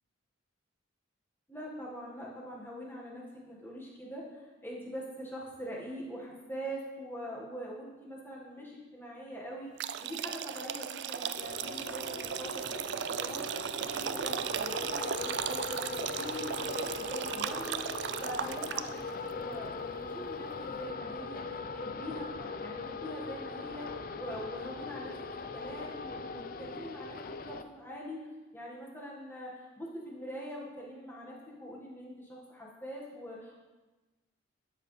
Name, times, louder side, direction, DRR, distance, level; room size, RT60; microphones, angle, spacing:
voice 1, 1.5-15.9 16.2-19.1 19.3-25.1 25.5-28.2 28.5-33.6, equal, 10° left, -4 dB, 1.6 m, -43 dB
sound 1, 9.8-19.1, right 8 dB, 60° right, 0.3 m, -36 dB
sound 2, 11.4-27.6, left 4 dB, 45° left, 0.5 m, -40 dB
12.5 x 7.6 x 3.3 m, 1.2 s
head